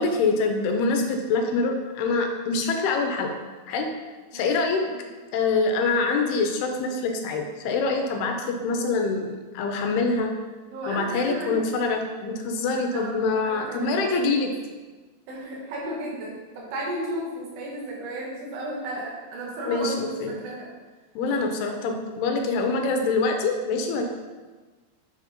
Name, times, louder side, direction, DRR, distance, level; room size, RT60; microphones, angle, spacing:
voice 1, 0.0-3.3 3.7-3.9 4.3-4.9 5.3-10.3 10.9-14.5 19.7-20.4 21.2-24.0, left 3 dB, 80° left, 4 dB, 2.6 m, -25 dB
voice 2, 10.7-11.9 12.9-14.4 15.3-20.7 22.4-22.6, right 1 dB, 85° right, -4 dB, 3.6 m, -34 dB
7.6 x 4.0 x 5.1 m, 1.3 s
omnidirectional pair, 4.6 m